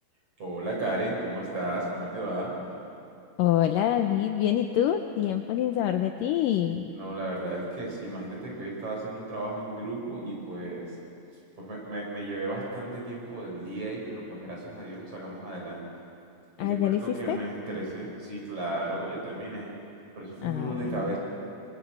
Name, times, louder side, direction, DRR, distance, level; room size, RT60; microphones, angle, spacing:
voice 1, 0.4-2.5 6.9-10.9 11.6-15.9 16.6-19.7 20.1-21.2, right 2 dB, 35° right, -2 dB, 6.4 m, -34 dB
voice 2, 3.4-6.9 16.6-17.4 20.4-21.1, left 11 dB, 85° left, 6 dB, 1.9 m, -26 dB
26.0 x 24.0 x 7.7 m, 2.6 s
omnidirectional pair, 4.9 m